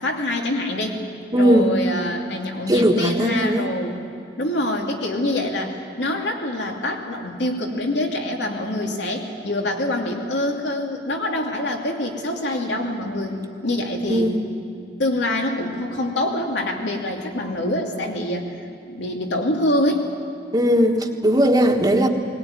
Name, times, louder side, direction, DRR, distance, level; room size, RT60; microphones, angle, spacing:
voice 1, 0.0-1.0 1.4-4.0 4.4-14.4 15.0-18.5 18.9-20.1, left 1 dB, 85° left, 1 dB, 2.7 m, -25 dB
voice 2, 1.3-1.7 2.7-3.7 14.1-14.4 20.5-22.1, equal, 20° right, 2 dB, 1.4 m, -18 dB
20.5 x 20.0 x 9.7 m, 2.4 s
head